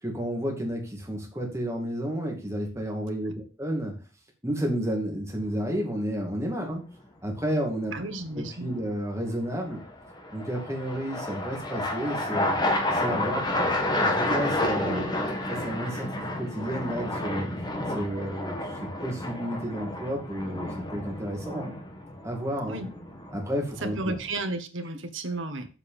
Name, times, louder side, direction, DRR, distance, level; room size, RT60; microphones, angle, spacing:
voice 1, 0.0-3.9 4.4-6.8 7.2-7.9 8.4-9.8 10.3-12.5 12.9-13.7 14.0-15.0 15.5-16.1 16.4-17.5 17.9-21.8 22.2-22.8 23.3-24.1, equal, 15° right, 0 dB, 2.4 m, -31 dB
sound 1, 5.4-5.9 9.7-24.3, left 1 dB, 20° left, 1.5 m, -30 dB
voice 2, 7.9-8.7 14.8-15.1 22.7-22.9 23.8-25.7, right 2 dB, 65° right, 7 dB, 1.4 m, -33 dB
7.8 x 5.2 x 7.1 m, 0.34 s
head